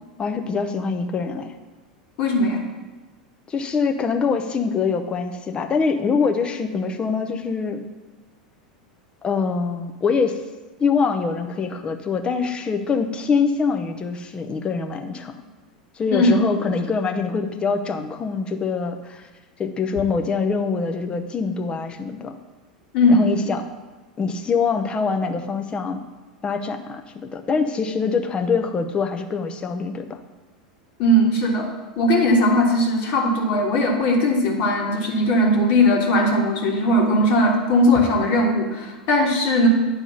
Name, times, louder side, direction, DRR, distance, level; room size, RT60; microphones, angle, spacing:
voice 1, 0.2-1.6 3.5-7.8 9.2-10.4 10.8-15.4 16.0-19.3 19.6-22.3 23.1-23.6 24.2-26.0 26.4-27.0 27.3-30.2, left 5 dB, 25° left, 6 dB, 0.7 m, -24 dB
voice 2, 2.2-2.6 16.1-16.4 22.9-23.3 31.0-39.7, left 1 dB, 50° left, -1 dB, 1.5 m, -19 dB
9.4 x 3.5 x 5.5 m, 1.3 s
figure-of-eight pair, 85°, 4 cm